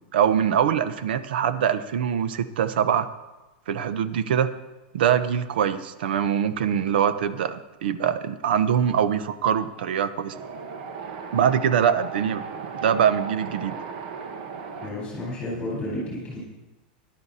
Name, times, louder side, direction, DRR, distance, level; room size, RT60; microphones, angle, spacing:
voice 1, 0.0-3.1 3.7-4.5 4.9-10.3 11.3-12.4 12.7-13.7, right 8 dB, 80° right, 13 dB, 0.8 m, -23 dB
Wind, 10.3-14.9, right 5 dB, 60° right, 1.4 m, -36 dB
voice 2, 14.8-16.4, left 1 dB, 10° left, -5 dB, 4.2 m, -31 dB
13.0 x 11.0 x 4.2 m, 1.1 s
supercardioid pair, 150°, 5 cm